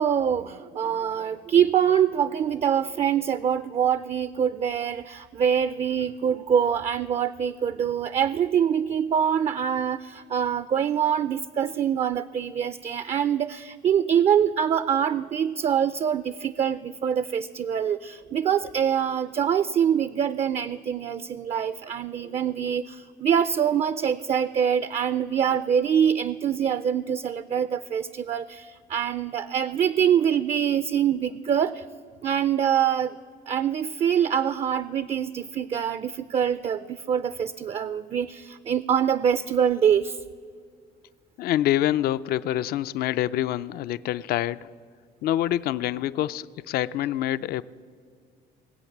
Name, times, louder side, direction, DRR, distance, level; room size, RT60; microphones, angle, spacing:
voice 1, 0.0-31.8 32.2-33.1 33.5-40.2, right 8 dB, 35° right, 15 dB, 0.4 m, -24 dB
voice 2, 41.4-44.6 45.2-47.6, left 13 dB, 65° left, 16 dB, 0.4 m, -26 dB
19.5 x 8.0 x 7.1 m, 2.1 s
cardioid pair, 110°, 17 cm